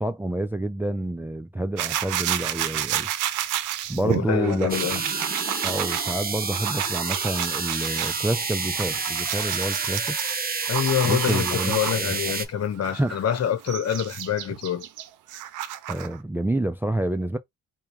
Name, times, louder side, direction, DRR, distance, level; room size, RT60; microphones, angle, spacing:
voice 1, 0.0-3.1 3.9-5.0 5.6-10.2 11.0-12.3 12.9-13.2 15.9-17.4, right 1 dB, 5° right, 0.4 m, -28 dB
sound 1, 1.8-8.2 8.6-12.2 12.8-16.2, right 12 dB, 90° right, 0.6 m, -31 dB
voice 2, 4.0-5.0 10.7-14.8, left 9 dB, 55° left, 1.1 m, -26 dB
sound 2, 4.7-12.5, right 4 dB, 30° right, 0.8 m, -29 dB
4.1 x 2.3 x 3.4 m
cardioid pair, 90°, 30 cm